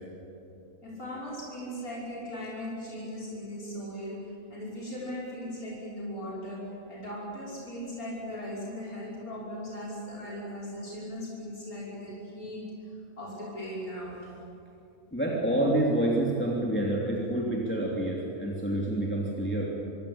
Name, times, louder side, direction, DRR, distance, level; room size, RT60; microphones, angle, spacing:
voice 1, 0.8-12.7 13.2-14.3, equal, 85° left, -5 dB, 6.4 m, -38 dB
voice 2, 15.1-19.7, right 1 dB, 10° left, -3 dB, 3.1 m, -28 dB
26.0 x 23.5 x 8.8 m, 2.8 s
omnidirectional pair, 1.5 m